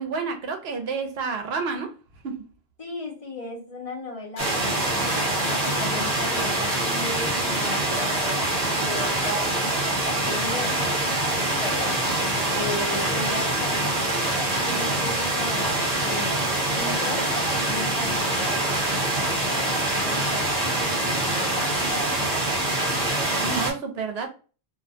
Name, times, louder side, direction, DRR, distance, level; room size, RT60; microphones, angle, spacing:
voice 1, 0.0-1.9 2.2-2.5 23.3-24.3, right 5 dB, 75° right, 0.8 m, -29 dB
voice 2, 2.8-11.9 12.5-14.3 14.6-22.3, left 1 dB, 40° left, 0.7 m, -36 dB
sound 1, 4.4-23.7, left 2 dB, 80° left, 0.9 m, -39 dB
sound 2, 4.4-23.7, right 2 dB, 40° right, 0.9 m, -25 dB
2.4 x 2.2 x 2.5 m
omnidirectional pair, 1.1 m